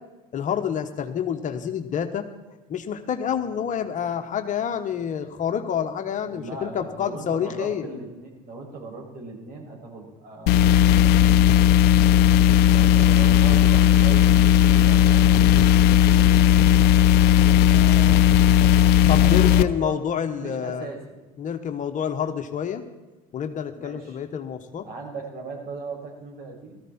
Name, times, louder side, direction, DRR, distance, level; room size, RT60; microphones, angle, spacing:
voice 1, 0.3-2.3 2.7-7.9 19.1-20.9 21.4-22.8 23.3-24.9, left 8 dB, 45° left, 7 dB, 1.4 m, -28 dB
voice 2, 6.2-11.1 12.7-16.8 17.2-18.7 19.1-20.0 20.4-21.0 23.7-24.2 24.8-26.8, right 3 dB, 55° right, -1 dB, 6.5 m, -38 dB
sound 1, 10.5-19.6, left 11 dB, 60° left, 0.6 m, -16 dB
17.0 x 14.5 x 4.4 m, 1.1 s
hypercardioid pair, 85°, 19 cm